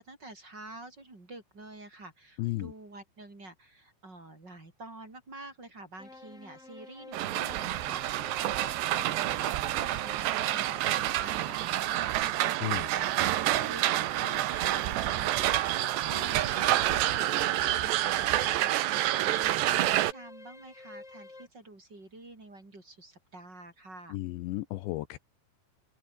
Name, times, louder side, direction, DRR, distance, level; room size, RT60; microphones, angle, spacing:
voice 1, 0.0-17.5 17.8-24.2, right 2 dB, 20° right, 5.3 m, -48 dB
voice 2, 2.4-2.7 12.6-12.9 24.1-25.2, left 17 dB, 80° left, 3.0 m, -33 dB
sound 1, 6.0-11.4 12.4-18.9 19.9-21.5, left 2 dB, 15° left, 3.6 m, -49 dB
sound 2, 7.1-20.1, right 14 dB, 75° right, 3.3 m, -28 dB
open air
omnidirectional pair, 5.4 m